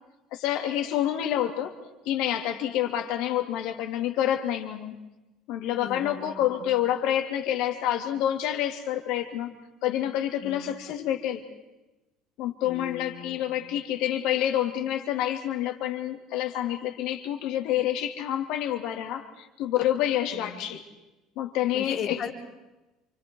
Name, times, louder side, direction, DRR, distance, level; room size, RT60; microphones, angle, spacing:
voice 1, 0.3-1.7 2.0-4.9 5.5-9.5 9.8-11.4 12.4-20.8 21.4-22.2, left 11 dB, 70° left, 4 dB, 3.0 m, -28 dB
voice 2, 5.8-6.4 10.4-10.7 12.6-13.4 20.3-20.6 21.7-22.3, left 8 dB, 50° left, 1 dB, 4.0 m, -37 dB
28.5 x 26.0 x 4.8 m, 1.0 s
supercardioid pair, 90°, 0 cm